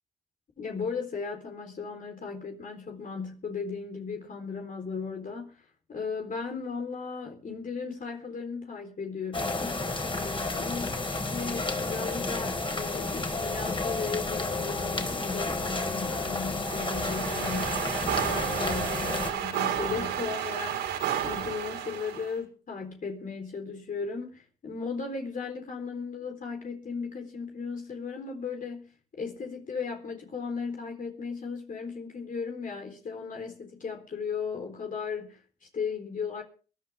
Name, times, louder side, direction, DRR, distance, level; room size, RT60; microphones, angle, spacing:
voice 1, 0.6-9.9 10.1-10.9 11.3-17.8 18.2-36.4, left 5 dB, 50° left, 4.0 m, -36 dB
sound 1, 9.3-19.3, left 3 dB, 30° left, 4.9 m, -31 dB
sound 2, 16.6-22.3, right 9 dB, 85° right, 4.8 m, -32 dB
22.5 x 11.5 x 3.6 m
supercardioid pair, 55°, 18 cm